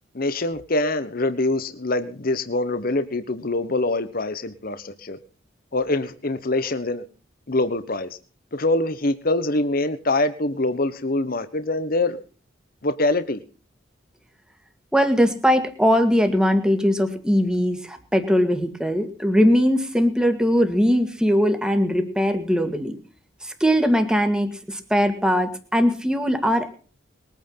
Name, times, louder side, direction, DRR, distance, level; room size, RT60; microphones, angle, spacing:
voice 1, 0.1-5.2 5.7-7.0 7.5-8.2 8.5-12.2 12.8-13.4, left 2 dB, 50° left, 11 dB, 1.2 m, -24 dB
voice 2, 14.9-23.0 23.4-26.7, equal, 5° right, 6 dB, 2.0 m, -20 dB
21.5 x 9.2 x 5.7 m, 0.39 s
head